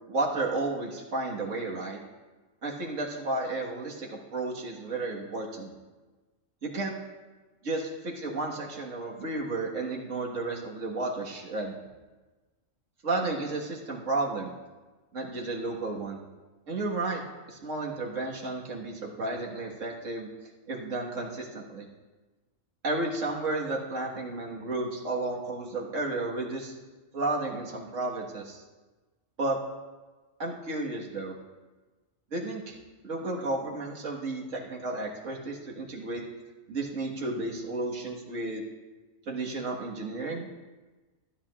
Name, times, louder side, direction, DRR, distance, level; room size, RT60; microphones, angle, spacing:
voice 1, 0.1-2.0 2.6-5.7 6.6-6.9 7.6-11.7 13.0-14.5 15.1-16.2 16.7-20.3 20.7-21.9 22.8-26.7 27.1-28.6 29.4-29.6 30.4-31.4 32.3-32.8 33.0-36.2 36.7-38.6 39.3-40.6, right 2 dB, 75° right, -2 dB, 2.0 m, -32 dB
15.5 x 10.0 x 2.5 m, 1.2 s
omnidirectional pair, 1.3 m